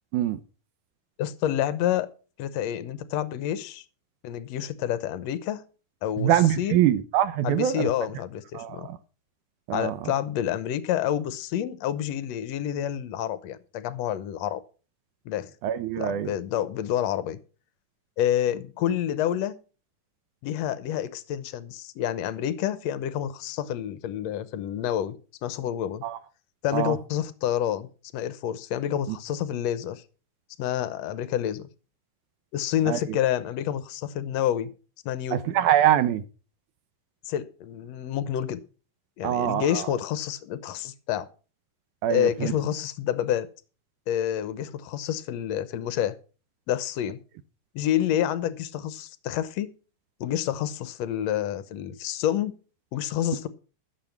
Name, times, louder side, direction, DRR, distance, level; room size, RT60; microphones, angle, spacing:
voice 1, 1.2-2.1 2.4-3.8 4.2-5.6 6.0-6.3 6.6-6.8 7.4-8.9 9.7-14.6 15.2-15.5 16.0-17.4 18.2-19.5 20.4-25.2 25.4-26.0 26.6-30.0 30.6-31.7 32.5-34.7 35.0-35.4 37.2-38.6 39.2-41.3 42.1-43.5 44.1-46.1 46.7-47.2 47.7-49.7 50.2-52.5 52.9-53.5, left 11 dB, 70° left, 1.6 m, -28 dB
voice 2, 6.2-7.9 8.5-9.0 9.7-10.1 15.6-16.3 26.0-26.2 26.7-27.0 29.1-29.2 32.9-33.0 35.3-36.2 39.2-39.9 42.0-42.5, right 11 dB, 75° right, 2.0 m, -24 dB
14.5 x 7.2 x 5.9 m
omnidirectional pair, 4.0 m